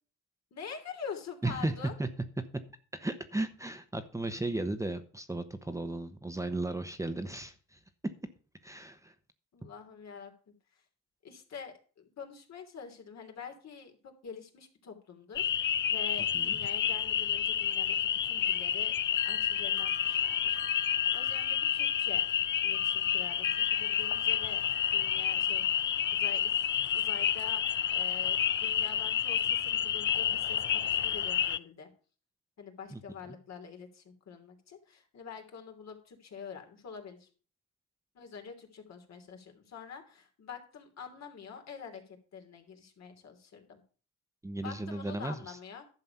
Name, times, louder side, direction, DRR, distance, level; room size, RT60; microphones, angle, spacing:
voice 1, 0.5-1.9 9.5-10.8 11.2-19.0 19.2-20.6 21.1-22.2 22.6-24.6 24.9-26.6 26.9-27.6 27.9-31.9 32.6-37.3 38.1-43.8 44.6-45.9, left 6 dB, 60° left, 4 dB, 3.0 m, -46 dB
voice 2, 1.4-1.7 2.0-2.1 2.9-7.8 8.6-9.1 16.3-16.6 32.9-33.0 44.4-45.6, right 2 dB, 10° right, 8 dB, 1.0 m, -35 dB
sound 1, 15.4-31.6, left 9 dB, 40° left, 0.5 m, -29 dB
sound 2, 19.0-29.1 29.5-30.7, left 9 dB, 75° left, 1.6 m, -49 dB
11.5 x 6.9 x 5.7 m, 0.39 s
cardioid pair, 90°, 30 cm